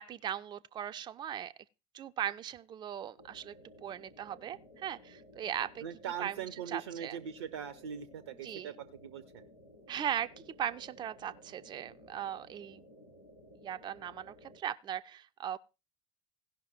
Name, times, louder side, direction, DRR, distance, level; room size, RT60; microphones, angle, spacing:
voice 1, 0.0-1.5 1.9-3.5 3.8-5.8 6.2-6.4 6.7-7.2 8.4-8.8 9.9-12.9 13.6-15.6, right 10 dB, 30° right, 0.5 m, -38 dB
sound 1, 3.2-14.6, equal, 90° left, 1.5 m, -57 dB
voice 2, 5.8-9.4, right 8 dB, 70° right, 0.6 m, -41 dB
16.0 x 5.7 x 4.3 m
figure-of-eight pair, 65°, 14 cm